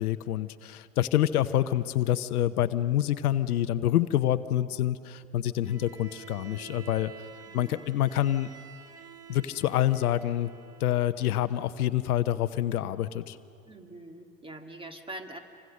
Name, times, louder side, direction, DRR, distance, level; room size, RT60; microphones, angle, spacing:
voice 1, 0.0-7.1 7.5-8.5 9.3-10.5 10.8-13.4, left 12 dB, 75° left, 13 dB, 0.9 m, -27 dB
Bowed string instrument, 5.6-11.2, right 8 dB, 30° right, 1.8 m, -50 dB
voice 2, 7.5-7.9 13.7-15.4, right 1 dB, 10° right, 5 dB, 2.2 m, -43 dB
27.5 x 25.0 x 6.5 m, 2.4 s
hypercardioid pair, 85°, 45 cm